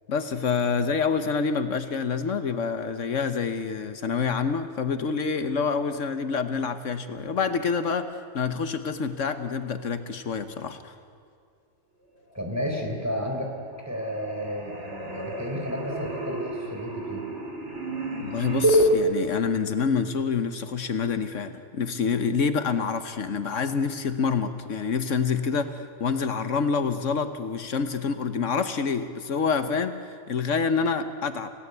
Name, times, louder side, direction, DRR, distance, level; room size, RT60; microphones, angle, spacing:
voice 1, 0.1-10.9 18.2-31.5, left 5 dB, 75° left, 9 dB, 1.4 m, -27 dB
voice 2, 12.3-13.5 13.9-17.2, equal, 10° right, 1 dB, 4.2 m, -32 dB
sound 1, 12.9-13.5 13.7-18.9, equal, 65° right, 3.4 m, -29 dB
30.0 x 17.5 x 8.2 m, 2.4 s
omnidirectional pair, 1.3 m